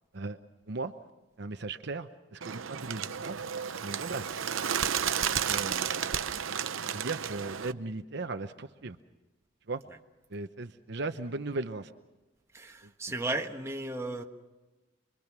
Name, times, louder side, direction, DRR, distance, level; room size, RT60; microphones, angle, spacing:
voice 1, 1.4-3.4 3.8-4.5 5.3-6.1 6.8-9.0 9.7-9.8 10.3-11.9, right 3 dB, 60° right, 8 dB, 0.8 m, -37 dB
Bird, 2.4-7.7, right 8 dB, 90° right, 0.7 m, -32 dB
voice 2, 12.5-14.2, right 2 dB, 15° right, 2 dB, 1.4 m, -35 dB
27.0 x 22.5 x 6.1 m, 1.1 s
head